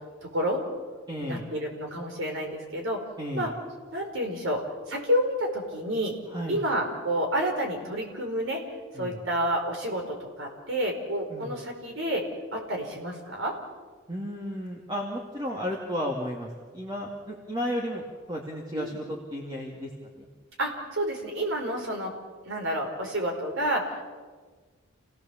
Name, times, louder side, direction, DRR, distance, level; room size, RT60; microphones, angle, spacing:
voice 1, 0.3-0.6 1.2-3.0 3.3-3.5 3.9-6.2 6.5-8.6 8.9-12.2 12.5-13.5 18.7-19.0 20.6-22.1 22.4-24.0, equal, 65° right, 1 dB, 5.0 m, -29 dB
voice 2, 1.1-1.4 3.2-3.5 6.3-6.6 8.9-9.2 11.3-11.5 14.1-18.0 18.3-19.9 20.2-20.3, equal, 20° right, -1 dB, 2.4 m, -33 dB
29.0 x 17.5 x 7.3 m, 1.4 s
head